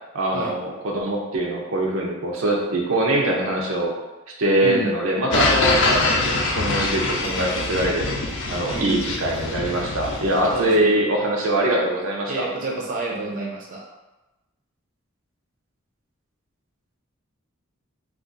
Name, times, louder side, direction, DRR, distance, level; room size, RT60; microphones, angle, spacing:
voice 1, 0.1-3.9 4.4-8.1 8.5-12.5, right 1 dB, 80° right, -1 dB, 0.6 m, -23 dB
sound 1, 5.3-10.7, left 3 dB, 60° left, 0.5 m, -24 dB
voice 2, 8.7-9.0 10.5-10.9 12.3-13.8, right 2 dB, 40° right, -3 dB, 0.5 m, -29 dB
2.4 x 2.4 x 3.8 m, 1.1 s
head